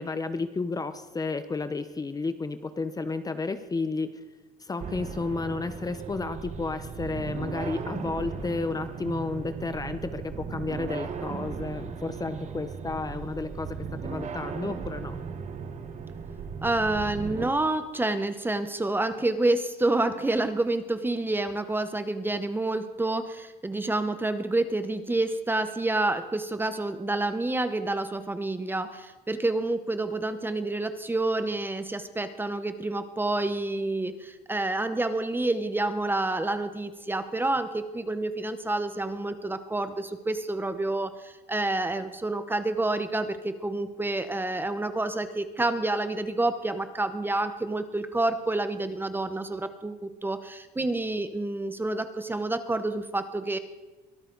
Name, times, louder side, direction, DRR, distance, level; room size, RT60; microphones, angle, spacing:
voice 1, 0.0-4.1 4.6-13.7 14.0-15.2, left 3 dB, 20° left, 11 dB, 0.9 m, -32 dB
sound 1, 4.8-17.5, right 6 dB, 45° right, 1.4 m, -37 dB
voice 2, 16.6-53.6, right 2 dB, 10° right, 10 dB, 1.0 m, -28 dB
23.0 x 13.5 x 4.0 m, 1.2 s
cardioid pair, 110°, 17 cm